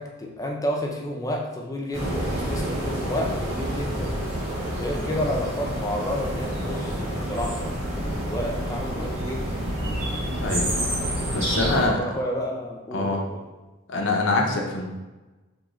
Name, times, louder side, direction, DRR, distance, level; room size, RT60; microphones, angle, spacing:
voice 1, 0.0-4.1 4.8-9.6 11.6-13.4, equal, 15° left, 0 dB, 0.4 m, -31 dB
sound 1, 1.9-11.9, right 1 dB, 70° right, 1.4 m, -28 dB
voice 2, 10.4-10.7 11.3-12.0 12.9-13.2 13.9-14.9, left 3 dB, 60° left, 1 dB, 0.6 m, -24 dB
3.6 x 3.1 x 3.1 m, 1.2 s
head